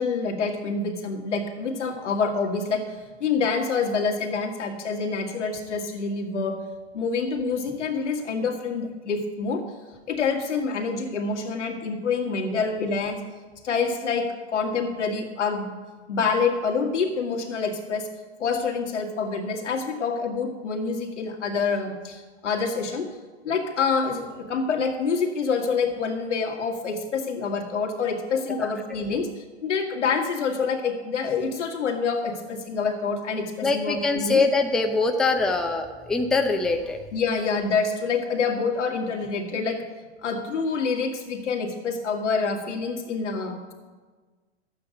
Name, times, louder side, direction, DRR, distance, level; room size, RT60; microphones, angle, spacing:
voice 1, 0.0-2.8 3.2-6.6 6.9-9.6 10.1-13.2 13.6-15.7 16.1-18.1 18.4-23.1 23.4-34.4 37.1-39.8 40.2-43.7, left 5 dB, 90° left, 2 dB, 1.9 m, -27 dB
voice 2, 33.6-37.0, left 3 dB, ahead, 3 dB, 0.5 m, -23 dB
12.0 x 8.5 x 5.1 m, 1.4 s
hypercardioid pair, 125°, 35 cm